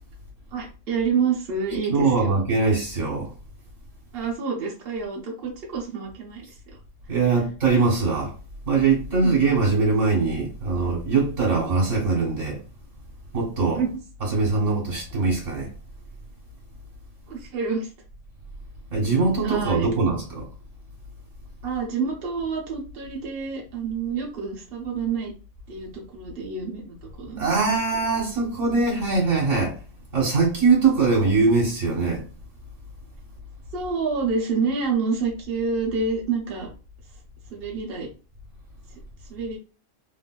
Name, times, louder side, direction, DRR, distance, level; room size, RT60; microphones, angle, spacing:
voice 1, 0.5-2.1 4.1-6.4 9.2-9.4 13.7-13.9 17.3-17.9 19.4-19.9 21.6-25.3 25.7-27.5 33.7-36.7 37.5-38.1 39.3-39.6, right 5 dB, 55° right, 1.0 m, -28 dB
voice 2, 1.9-3.3 7.1-8.3 8.7-12.6 13.3-13.8 14.2-15.7 18.9-20.5 27.4-29.8 30.1-32.2, right 4 dB, 70° right, 1.5 m, -22 dB
3.3 x 2.6 x 2.2 m
omnidirectional pair, 1.3 m